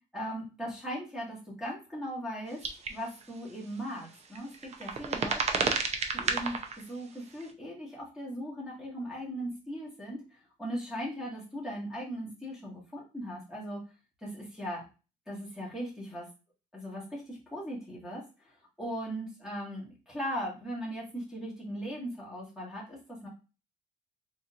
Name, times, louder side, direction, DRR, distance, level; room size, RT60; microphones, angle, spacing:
voice 1, 0.1-2.6 2.9-5.7 6.1-6.6 6.9-13.8 14.2-14.8 15.3-16.3 16.7-23.3, equal, ahead, -5 dB, 1.6 m, -38 dB
sound 1, 2.6-2.9 3.2-3.3 4.3-6.8 7.4-7.5, right 5 dB, 40° right, 0.6 m, -30 dB
4.0 x 2.9 x 2.4 m, 0.32 s
cardioid pair, 110°, 17 cm